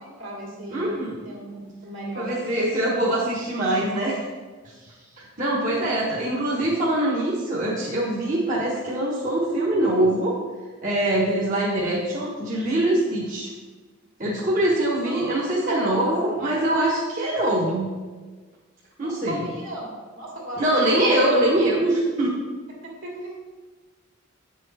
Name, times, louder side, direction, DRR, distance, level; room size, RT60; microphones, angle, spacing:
voice 1, 0.0-0.9 1.2-2.3 15.0-15.3 15.7-16.4 19.0-19.9 20.1-20.6 20.9-21.2 22.8-23.3, right 1 dB, 60° right, -2 dB, 2.6 m, -34 dB
voice 2, 0.7-1.2 2.1-4.2 5.2-10.3 10.8-13.5 14.2-17.9 19.0-19.5 20.6-22.4, right 1 dB, 35° right, -6 dB, 1.4 m, -23 dB
9.0 x 6.4 x 4.2 m, 1.4 s
head